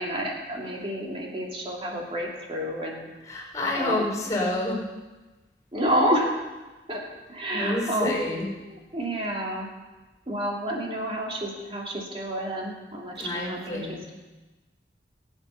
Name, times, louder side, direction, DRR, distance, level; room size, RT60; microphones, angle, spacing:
voice 1, 0.0-3.1 3.7-4.0 5.7-6.4 6.9-7.0 7.3-8.1 8.7-9.7 10.3-14.1, equal, 30° right, -2 dB, 2.5 m, -29 dB
voice 2, 3.2-4.8 7.5-8.5 13.2-14.0, left 1 dB, 20° left, -2 dB, 4.7 m, -28 dB
20.0 x 8.2 x 5.7 m, 1.2 s
head